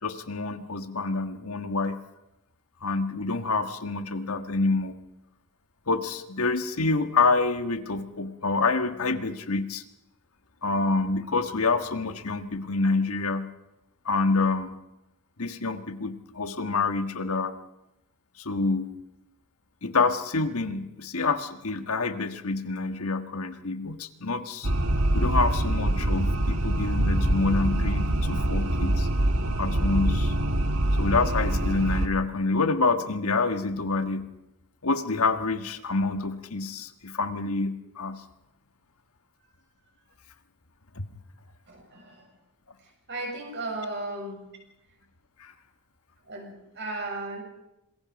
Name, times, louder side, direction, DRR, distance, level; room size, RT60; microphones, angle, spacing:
voice 1, 0.0-2.0 2.8-4.9 5.9-9.8 10.6-13.5 14.0-14.7 15.4-17.5 18.4-18.9 19.8-24.7 25.1-29.1 29.6-30.3 30.9-34.3 34.8-38.2 40.9-41.1 45.4-45.5, left 3 dB, 70° left, 9 dB, 1.5 m, -27 dB
sound 1, 24.6-32.1, right 1 dB, 70° right, 1.5 m, -24 dB
voice 2, 41.7-42.3 43.1-44.5 46.3-47.4, right 2 dB, 50° right, 1 dB, 7.1 m, -35 dB
26.5 x 21.5 x 5.3 m, 0.88 s
head